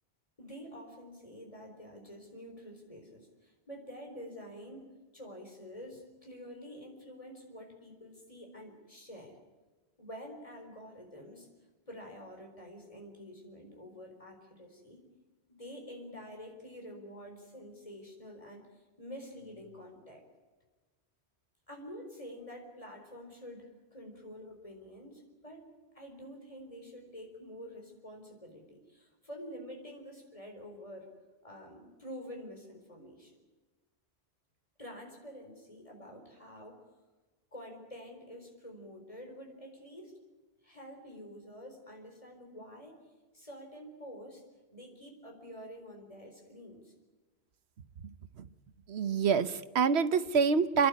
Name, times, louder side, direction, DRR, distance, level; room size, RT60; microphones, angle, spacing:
voice 1, 0.4-9.4 10.0-11.5 11.9-15.1 15.5-20.2 21.7-25.7 25.9-31.1 31.4-33.3 34.8-36.8 37.5-40.1 40.6-43.0 43.3-44.4 44.7-46.9, equal, 30° left, 2 dB, 4.5 m, -48 dB
voice 2, 48.9-50.9, right 6 dB, 75° right, 13 dB, 1.2 m, -26 dB
29.0 x 11.5 x 9.6 m, 1.3 s
omnidirectional pair, 1.1 m